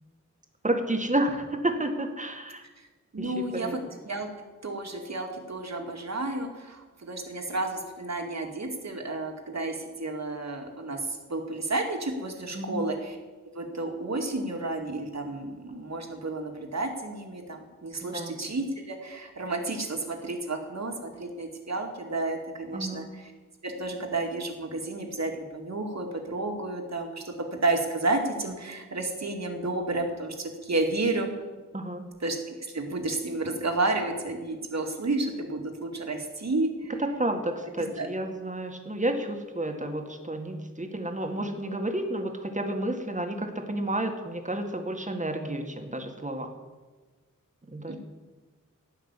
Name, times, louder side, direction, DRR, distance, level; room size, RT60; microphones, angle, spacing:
voice 1, 0.6-2.6 3.2-3.8 12.5-12.9 18.0-18.3 22.7-23.1 31.7-32.0 37.0-46.5 47.7-48.0, right 1 dB, 25° right, 4 dB, 1.9 m, -31 dB
voice 2, 3.1-4.3 4.6-13.2 13.5-23.3 23.6-31.3 32.2-36.9 37.6-38.1 47.9-48.0, right 2 dB, 55° right, 3 dB, 2.4 m, -31 dB
17.0 x 6.0 x 9.9 m, 1.3 s
wide cardioid pair, 105°, 32 cm